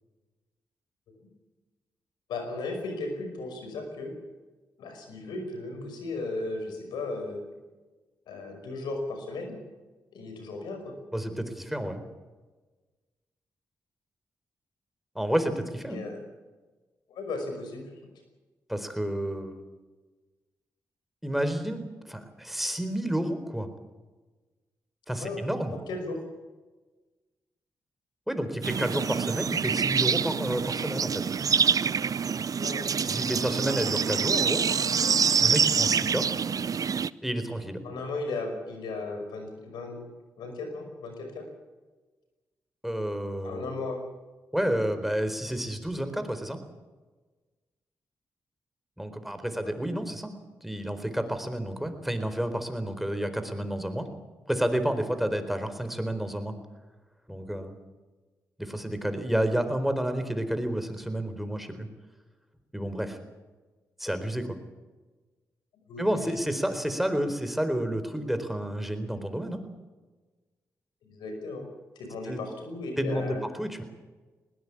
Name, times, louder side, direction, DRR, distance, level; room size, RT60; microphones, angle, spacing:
voice 1, 2.3-4.1 4.8-7.4 8.3-9.6 10.1-10.9 15.9-16.2 17.1-17.9 25.2-25.5 25.9-26.2 32.6-32.8 37.8-40.1 40.4-41.4 43.4-44.0 49.4-49.7 65.9-66.3 71.0-71.7 72.0-73.4, left 3 dB, 85° left, 5 dB, 5.5 m, -36 dB
voice 2, 11.1-12.0 15.1-16.0 18.7-19.6 21.2-23.7 25.1-25.7 28.3-31.2 33.0-34.6 35.4-36.3 37.2-37.8 42.8-43.7 44.5-46.6 49.0-50.3 50.6-54.1 54.5-56.5 57.3-57.8 58.6-61.9 62.7-63.2 64.0-64.6 66.0-69.6 72.3-72.4 73.0-73.8, right 1 dB, ahead, 9 dB, 4.2 m, -30 dB
sound 1, 28.6-37.1, right 6 dB, 55° right, 0.6 m, -26 dB
20.0 x 19.0 x 8.5 m, 1.3 s
supercardioid pair, 45°, 7 cm